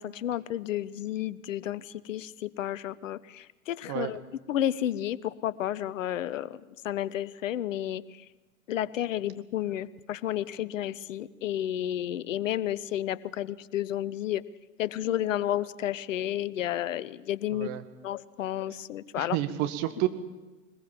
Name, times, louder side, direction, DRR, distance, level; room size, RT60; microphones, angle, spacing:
voice 1, 0.0-4.2 4.5-8.2 8.7-14.4 14.8-17.7 18.0-19.4, left 12 dB, 60° left, 18 dB, 0.9 m, -31 dB
voice 2, 17.5-17.8 19.2-20.1, right 15 dB, 40° right, 9 dB, 1.9 m, -29 dB
21.0 x 20.5 x 7.3 m, 1.1 s
figure-of-eight pair, 100°, 42 cm